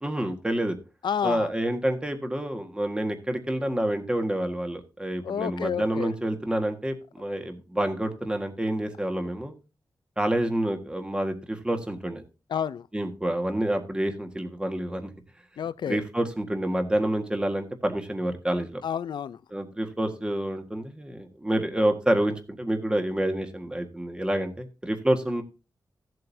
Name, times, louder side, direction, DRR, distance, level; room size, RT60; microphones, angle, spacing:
voice 1, 0.0-0.8 1.2-9.5 10.2-12.2 12.9-15.1 15.9-18.8 19.5-25.4, right 1 dB, 10° right, 1.6 m, -28 dB
voice 2, 1.0-1.5 5.2-6.1 12.5-12.8 15.6-16.0 18.8-19.4, left 8 dB, 85° left, 0.5 m, -29 dB
16.0 x 7.8 x 2.7 m
wide cardioid pair, 105°, 8 cm